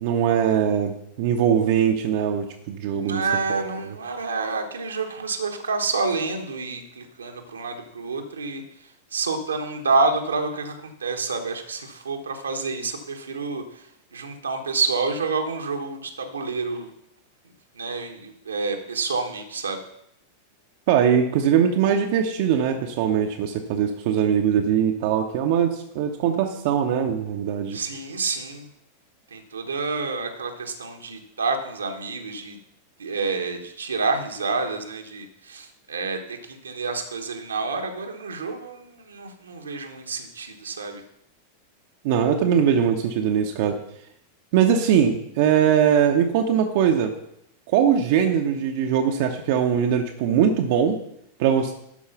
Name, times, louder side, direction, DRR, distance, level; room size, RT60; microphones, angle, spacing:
voice 1, 0.0-3.2 3.5-3.7 20.9-27.8 42.0-43.8 44.5-47.1 47.7-51.0 51.4-51.7, right 8 dB, 50° right, 3 dB, 0.9 m, -21 dB
voice 2, 3.0-8.6 9.1-16.9 17.7-19.8 27.7-28.7 29.3-32.6 33.0-41.0, right 4 dB, 75° right, 4 dB, 1.2 m, -28 dB
12.0 x 4.8 x 5.8 m, 0.75 s
figure-of-eight pair, 90°, 0 cm